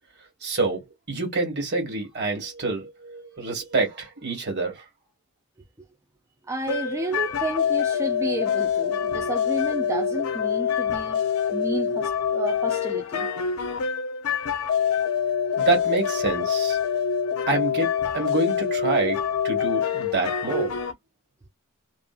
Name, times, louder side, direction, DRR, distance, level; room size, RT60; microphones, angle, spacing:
voice 1, 0.4-4.8 15.6-16.8 17.5-20.7, right 3 dB, 50° right, 1.5 m, -27 dB
voice 2, 6.4-13.3, right 2 dB, 15° right, 0.4 m, -32 dB
sound 1, 6.7-20.9, left 7 dB, 80° left, 0.6 m, -25 dB
2.6 x 2.5 x 2.3 m
head